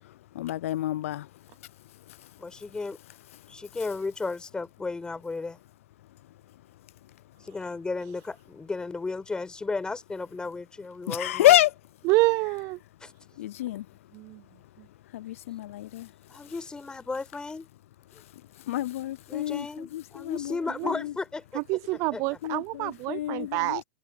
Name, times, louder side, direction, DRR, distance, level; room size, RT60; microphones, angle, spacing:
voice 1, 0.3-1.3 11.1-11.7 13.4-13.9 15.1-16.1 18.7-19.7 19.9-20.5 20.8-21.1 22.4-23.8, left 14 dB, 65° left, 0.6 m, -27 dB
voice 2, 2.4-3.0 3.5-5.6 7.4-11.6 13.0-13.1 16.3-17.7 19.3-21.6 22.1-22.2, left 3 dB, 10° left, 5.1 m, -34 dB
voice 3, 12.0-12.8 14.1-14.4 20.8-20.9 21.5-23.8, right 24 dB, 40° right, 0.7 m, -27 dB
hypercardioid pair, 120°, 8 cm